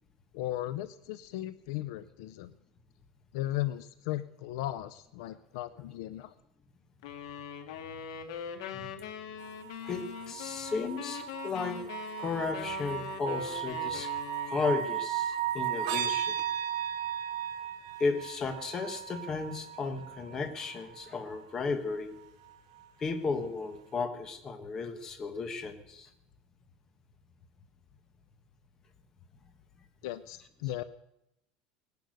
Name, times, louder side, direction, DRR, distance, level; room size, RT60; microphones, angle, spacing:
voice 1, 0.3-2.5 3.3-6.3 30.0-30.8, left 15 dB, 60° left, 14 dB, 0.5 m, -36 dB
sound 1, 7.0-15.0, left 8 dB, 80° left, 1.8 m, -42 dB
sound 2, 9.4-21.4 22.8-22.9, right 10 dB, 90° right, 1.6 m, -36 dB
voice 2, 9.8-11.8 12.2-14.1 14.4-16.4 18.0-22.1 23.0-26.1, left 4 dB, 20° left, 8 dB, 1.3 m, -34 dB
19.0 x 10.5 x 6.4 m, 0.86 s
cardioid pair, 175°, 3 cm